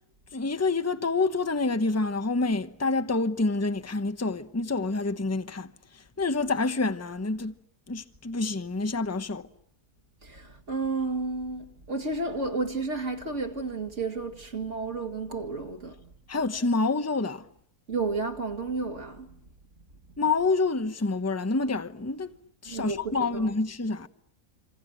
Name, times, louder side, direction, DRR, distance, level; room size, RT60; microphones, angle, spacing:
voice 1, 0.3-7.5 7.9-9.5 16.3-17.5 20.2-22.3 22.6-24.1, left 3 dB, 10° left, 0.9 m, -27 dB
voice 2, 10.2-16.1 17.9-19.4 22.7-23.5, right 3 dB, 50° right, 2.4 m, -32 dB
27.0 x 26.5 x 7.9 m
omnidirectional pair, 1.6 m